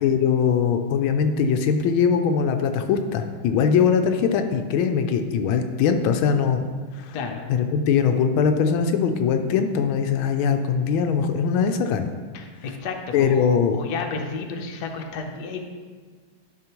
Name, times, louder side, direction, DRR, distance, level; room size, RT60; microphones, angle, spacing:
voice 1, 0.0-6.7 7.0-7.2 7.5-12.1 13.1-13.8, left 6 dB, 85° left, 7 dB, 1.4 m, -21 dB
voice 2, 7.1-7.5 12.3-15.6, left 4 dB, 65° left, 3 dB, 1.2 m, -32 dB
11.0 x 5.6 x 2.9 m, 1.5 s
omnidirectional pair, 2.2 m